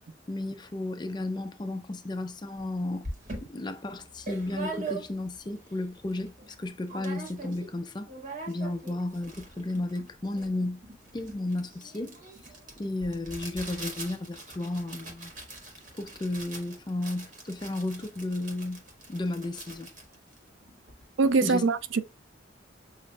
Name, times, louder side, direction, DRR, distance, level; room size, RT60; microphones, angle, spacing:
voice 1, 0.3-3.1 3.4-8.1 8.5-10.8 11.1-12.2 12.8-15.3 15.9-18.8 19.1-19.9 21.4-21.6, left 2 dB, 25° left, 0.5 m, -33 dB
sound 1, 2.6-2.7 3.0-5.4 5.8-5.9 6.1-6.6 6.9-7.7 8.0-21.0, right 3 dB, 45° right, 1.4 m, -42 dB
voice 2, 21.2-22.0, right 4 dB, 85° right, 0.4 m, -23 dB
6.4 x 2.5 x 2.3 m
head